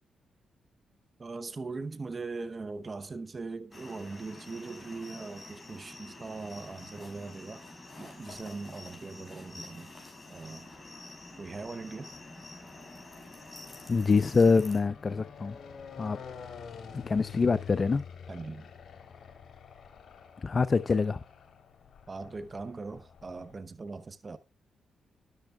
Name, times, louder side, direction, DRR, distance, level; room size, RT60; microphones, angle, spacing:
voice 1, 1.2-7.6 8.0-9.9 10.3-10.7 11.4-12.1 18.3-18.7 22.1-24.4, right 3 dB, 40° right, 0.9 m, -40 dB
sound 1, 3.7-14.8, left 2 dB, 25° left, 5.7 m, -48 dB
sound 2, 8.0-8.8 9.5-23.5, left 7 dB, 60° left, 3.0 m, -49 dB
voice 2, 13.9-15.6 16.0-16.2 16.9-18.0 20.4-21.2, left 4 dB, 45° left, 0.6 m, -25 dB
13.0 x 11.5 x 2.3 m
supercardioid pair, 50°, 0 cm